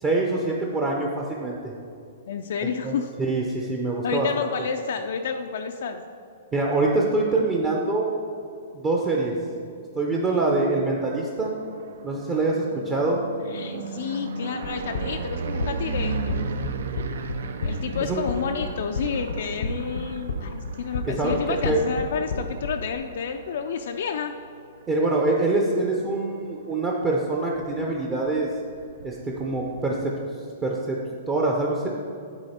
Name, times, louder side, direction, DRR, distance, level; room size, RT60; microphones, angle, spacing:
voice 1, 0.0-1.7 2.6-4.5 6.5-8.1 8.7-9.3 10.0-11.5 12.0-13.2 18.1-18.2 21.0-21.8 24.9-28.5 29.0-30.1 30.6-31.0 31.3-31.9, right 2 dB, 15° right, -2 dB, 0.6 m, -25 dB
voice 2, 2.3-3.1 4.0-6.0 13.5-16.5 17.6-24.3, left 6 dB, 60° left, 5 dB, 0.4 m, -30 dB
sound 1, 11.3-25.3 25.7-26.2 26.5-26.6 26.8-29.9, right 5 dB, 75° right, 0.5 m, -36 dB
sound 2, 14.6-22.9, left 3 dB, 85° left, 0.9 m, -30 dB
9.7 x 4.1 x 4.2 m, 2.5 s
hypercardioid pair, 165°, 0 cm